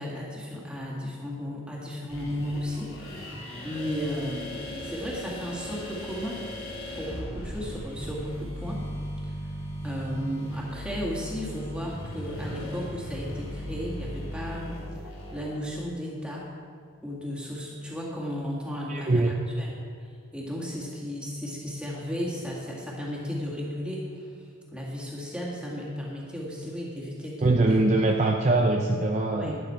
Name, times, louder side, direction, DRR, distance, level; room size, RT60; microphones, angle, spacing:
voice 1, 0.0-6.4 6.9-8.8 9.2-9.3 9.8-14.8 15.0-16.5 17.0-19.7 20.0-24.4 24.7-27.8 29.4-29.6, equal, 5° right, -4 dB, 2.1 m, -34 dB
sound 1, 2.1-15.6, equal, 70° left, 3.4 m, -37 dB
voice 2, 18.9-19.3 27.4-29.5, right 2 dB, 30° right, 1 dB, 0.6 m, -22 dB
12.0 x 11.0 x 4.5 m, 2.1 s
head